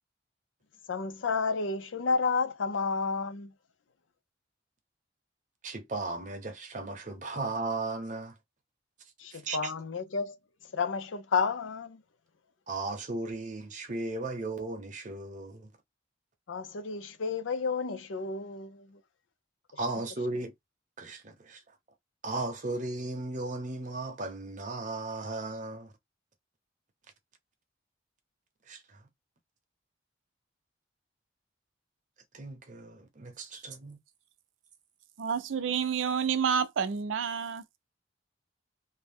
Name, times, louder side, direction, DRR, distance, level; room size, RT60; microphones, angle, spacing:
voice 1, 0.9-3.5 9.2-10.4 10.7-12.0 16.5-19.0, left 4 dB, 90° left, 0.5 m, -31 dB
voice 2, 5.6-8.3 9.3-9.7 12.7-15.7 19.8-20.5 21.0-21.6 22.2-25.9 28.7-29.0 32.3-34.0, right 2 dB, 40° right, 0.8 m, -36 dB
voice 3, 35.2-37.6, right 7 dB, 90° right, 0.4 m, -29 dB
2.7 x 2.1 x 3.4 m
head